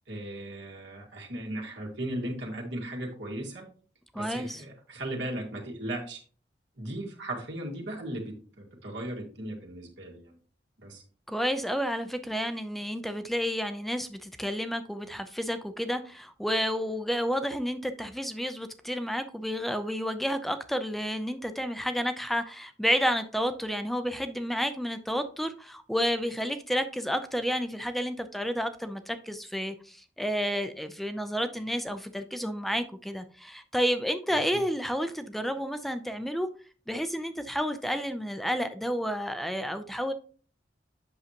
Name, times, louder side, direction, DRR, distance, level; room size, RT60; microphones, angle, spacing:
voice 1, 0.1-3.7 4.1-6.2 6.8-10.4 10.8-11.0 34.5-34.6, right 1 dB, 75° right, -1 dB, 2.0 m, -37 dB
voice 2, 4.1-4.6 11.3-36.5 36.9-40.1, equal, ahead, 9 dB, 0.5 m, -30 dB
8.2 x 6.4 x 2.9 m, 0.41 s
head